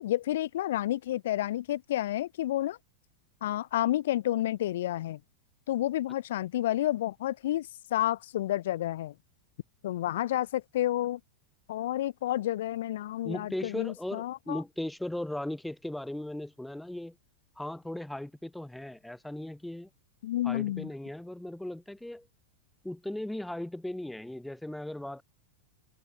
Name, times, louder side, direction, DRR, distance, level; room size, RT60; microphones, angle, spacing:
voice 1, 0.0-2.8 3.4-5.2 5.7-9.1 9.8-11.2 11.7-14.6 20.2-20.9, left 13 dB, 55° left, 0.7 m, -30 dB
voice 2, 13.2-17.1 17.6-19.9 20.4-22.3 22.8-25.2, left 1 dB, 5° left, 6.3 m, -37 dB
figure-of-eight pair, 90°, 0 cm